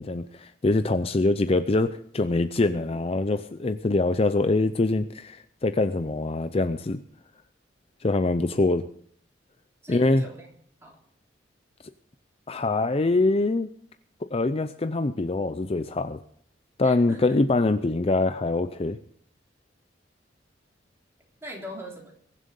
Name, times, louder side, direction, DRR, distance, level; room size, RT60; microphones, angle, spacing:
voice 1, 0.0-7.0 8.0-8.9 9.9-10.2 12.5-13.7 14.3-16.2 16.8-19.0, left 2 dB, 30° left, 10 dB, 0.5 m, -24 dB
voice 2, 9.8-10.5 10.8-11.0 16.8-17.4 21.4-22.1, equal, 15° right, -1 dB, 3.5 m, -41 dB
22.0 x 7.6 x 5.4 m, 0.63 s
head